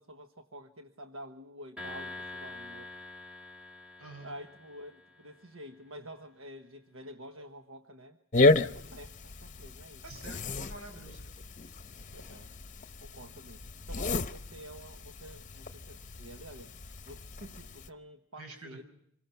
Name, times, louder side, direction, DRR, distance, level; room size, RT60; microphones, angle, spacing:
voice 1, 0.0-2.9 4.2-8.2 8.7-10.0 12.1-12.5 13.0-16.7 17.1-18.8, equal, 70° right, 6 dB, 1.3 m, -49 dB
sound 1, 1.8-5.2, left 2 dB, 5° right, 1.6 m, -45 dB
voice 2, 4.0-4.4 10.0-11.3 18.4-18.8, right 2 dB, 90° right, 5 dB, 6.1 m, -47 dB
sound 2, 8.3-17.9, left 2 dB, 35° left, 0.8 m, -32 dB
27.0 x 22.5 x 5.9 m, 0.76 s
head